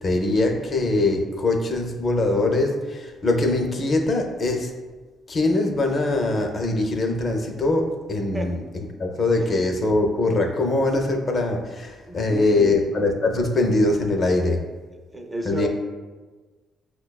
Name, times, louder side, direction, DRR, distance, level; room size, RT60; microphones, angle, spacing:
voice 1, 0.0-4.7 5.3-14.6 15.4-15.7, left 2 dB, 45° left, 3 dB, 0.5 m, -22 dB
voice 2, 9.4-9.9 12.1-12.8 15.1-15.7, right 1 dB, 15° right, 3 dB, 0.4 m, -32 dB
5.6 x 2.2 x 2.2 m, 1.3 s
cardioid pair, 90°, 0 cm